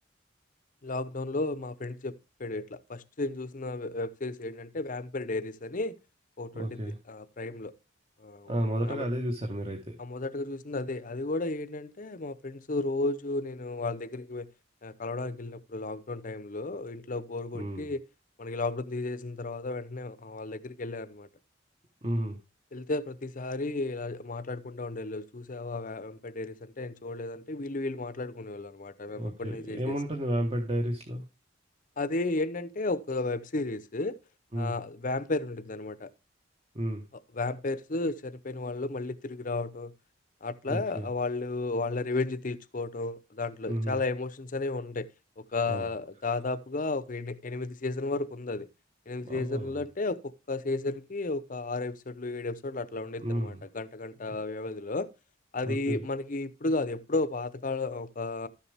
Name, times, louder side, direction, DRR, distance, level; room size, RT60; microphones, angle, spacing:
voice 1, 0.8-6.0 6.4-6.8 7.1-7.7 8.2-9.0 10.0-14.5 14.8-18.0 18.4-21.3 22.7-29.9 32.0-34.2 34.5-36.1 37.3-39.9 40.4-45.1 45.4-48.7 49.1-55.1 55.5-58.5, left 2 dB, 45° left, 0.7 m, -33 dB
voice 2, 6.5-7.0 8.5-10.0 17.5-17.9 22.0-22.4 29.1-31.2 34.5-34.7 36.7-37.0 40.7-41.1 43.7-44.0 45.7-45.9 49.2-49.8 53.2-53.6 55.7-56.0, equal, 30° right, 1.3 m, -32 dB
12.5 x 7.1 x 3.4 m
head